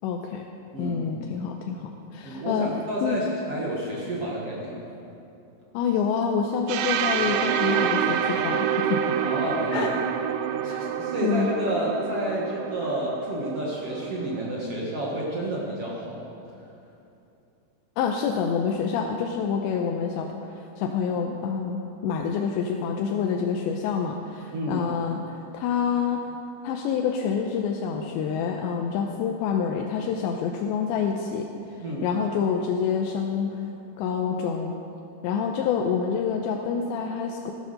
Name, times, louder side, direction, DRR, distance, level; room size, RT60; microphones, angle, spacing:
voice 1, 0.0-0.4 0.8-2.7 3.0-3.2 5.7-9.0 9.7-9.9 10.7-10.8 11.2-11.5 18.0-20.3 20.8-26.3 26.6-31.5 32.0-33.6 34.0-34.8 35.2-37.5, left 6 dB, 85° left, 1 dB, 3.0 m, -27 dB
voice 2, 0.7-1.0 2.2-4.9 9.2-9.9 10.5-16.3 24.5-24.9 31.8-32.1, right 1 dB, 60° right, -4 dB, 1.5 m, -30 dB
sound 1, 6.7-14.5, right 8 dB, 85° right, 2.8 m, -27 dB
15.0 x 10.5 x 6.6 m, 2.8 s
omnidirectional pair, 5.1 m